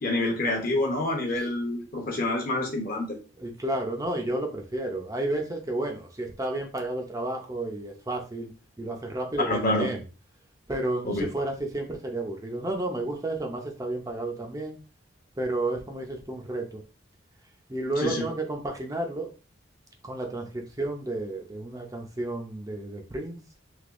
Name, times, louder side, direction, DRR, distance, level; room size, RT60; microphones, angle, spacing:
voice 1, 0.0-3.2 9.4-9.9 11.0-11.3 18.0-18.3, left 2 dB, 50° left, 2 dB, 0.8 m, -27 dB
voice 2, 3.4-8.5 8.8-10.0 10.7-14.8 15.4-16.8 17.7-19.3 20.0-23.4, right 2 dB, 20° right, 2 dB, 0.5 m, -31 dB
3.4 x 2.7 x 2.5 m, 0.33 s
head